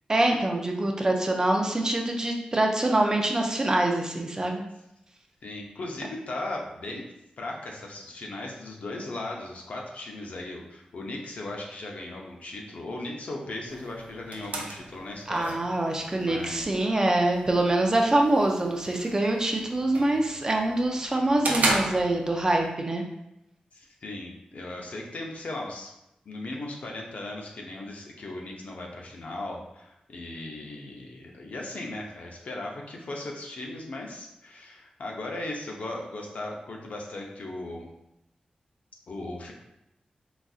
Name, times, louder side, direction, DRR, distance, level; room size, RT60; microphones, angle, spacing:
voice 1, 0.1-4.6 15.3-23.0, right 1 dB, 25° right, 2 dB, 0.4 m, -25 dB
voice 2, 5.4-7.0 7.4-15.5 15.9-16.7 23.7-25.9 26.3-37.9 39.1-39.5, left 2 dB, 65° left, 0 dB, 0.6 m, -37 dB
sound 1, 13.7-22.7, right 2 dB, 80° right, 0.5 m, -35 dB
3.9 x 2.4 x 2.4 m, 0.86 s
wide cardioid pair, 150°, 3 cm